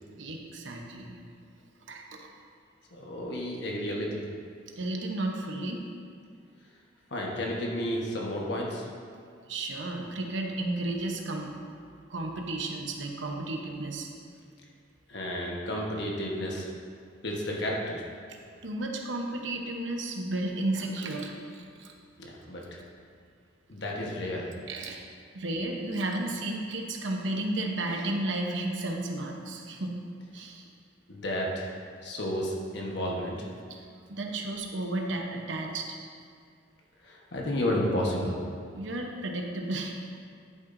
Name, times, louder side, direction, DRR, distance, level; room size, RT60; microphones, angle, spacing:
voice 1, 0.1-1.2 1.9-2.3 4.8-5.8 9.5-11.6 12.1-14.1 18.6-21.9 24.7-25.1 25.3-30.0 30.3-30.7 33.7-36.0 38.7-40.0, right 2 dB, 85° right, 1 dB, 1.0 m, -33 dB
voice 2, 2.9-4.2 7.1-8.9 15.1-16.7 17.2-18.0 22.2-22.6 23.7-24.5 31.1-31.7 32.0-33.5 37.0-38.4, left 1 dB, 65° left, -2 dB, 1.3 m, -31 dB
11.0 x 8.7 x 2.7 m, 2.2 s
head